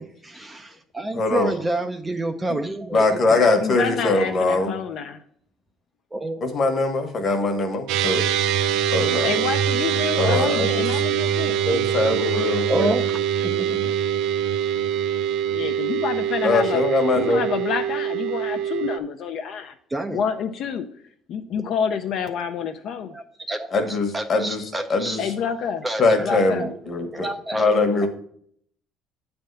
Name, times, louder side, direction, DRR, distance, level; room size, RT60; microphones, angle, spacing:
voice 1, 0.0-3.6 6.1-6.5 12.7-14.1 19.9-20.2 23.1-25.2 25.8-28.1, right 1 dB, 10° right, 6 dB, 0.4 m, -29 dB
voice 2, 1.1-1.5 2.5-2.6 2.9-4.7 6.4-8.2 8.9-9.3 10.2-11.0 11.7-12.9 16.4-17.4 23.7-24.6 24.9-25.3 26.0-28.1, left 3 dB, 35° left, 6 dB, 1.2 m, -22 dB
voice 3, 3.3-5.2 9.2-11.6 15.5-16.8 17.2-19.7 20.1-20.9 21.3-23.2 25.2-25.9 26.1-26.7, left 7 dB, 50° left, 6 dB, 0.5 m, -28 dB
sound 1, 7.9-19.0, right 9 dB, 70° right, 0.4 m, -24 dB
8.8 x 3.5 x 6.5 m, 0.64 s
cardioid pair, 155°, 0 cm